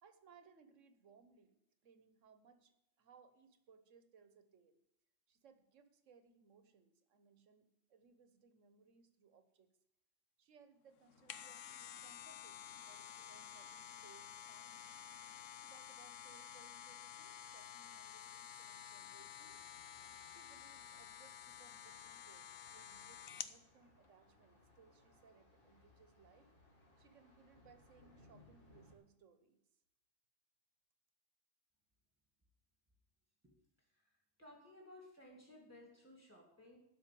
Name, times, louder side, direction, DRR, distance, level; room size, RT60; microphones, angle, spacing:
voice 1, 0.0-4.8 5.3-9.7 10.4-14.9 15.6-19.7 20.3-26.5 27.0-29.6, right 6 dB, 80° right, 10 dB, 1.4 m, -66 dB
sound 1, 11.0-23.6 24.0-24.1, left 9 dB, 90° left, 1.1 m, -51 dB
Thunder, 18.9-28.9, left 2 dB, 45° left, 2.8 m, -68 dB
voice 2, 34.4-36.8, left 1 dB, 10° right, -1 dB, 2.4 m, -58 dB
12.5 x 5.9 x 7.6 m, 0.86 s
omnidirectional pair, 1.3 m